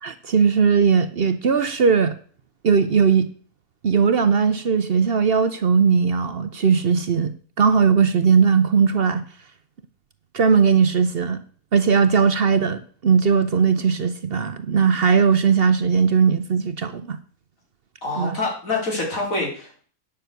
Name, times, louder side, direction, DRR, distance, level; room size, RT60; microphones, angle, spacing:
voice 1, 0.0-2.2 2.6-3.3 3.8-9.2 10.3-11.4 11.7-17.2 18.1-18.4, right 6 dB, 50° right, 0.9 m, -18 dB
voice 2, 18.0-19.9, left 2 dB, 80° left, 4.7 m, -26 dB
9.7 x 6.2 x 8.1 m
omnidirectional pair, 1.4 m